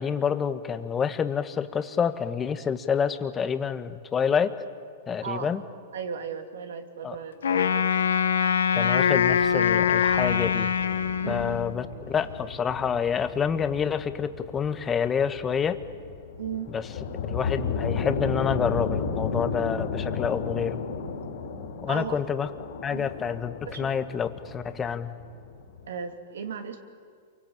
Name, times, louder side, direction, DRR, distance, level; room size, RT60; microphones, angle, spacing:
voice 1, 0.0-4.5 5.1-5.6 7.0-7.2 8.7-10.7 11.3-15.8 16.7-16.9 17.3-20.8 21.8-22.5 22.8-25.2, left 7 dB, 20° left, 9 dB, 1.5 m, -28 dB
voice 2, 5.2-5.5 5.9-7.9 11.2-11.6 16.4-16.7 21.9-22.2 22.9-23.1 23.6-23.9 25.9-26.8, right 7 dB, 80° right, 5 dB, 2.7 m, -36 dB
Wind instrument woodwind instrument, 7.4-11.8, left 7 dB, 85° left, 1.2 m, -23 dB
sound 1, 9.2-25.8, left 5 dB, 65° left, 4.3 m, -34 dB
28.0 x 24.0 x 8.8 m, 2.1 s
hypercardioid pair, 120°, 0 cm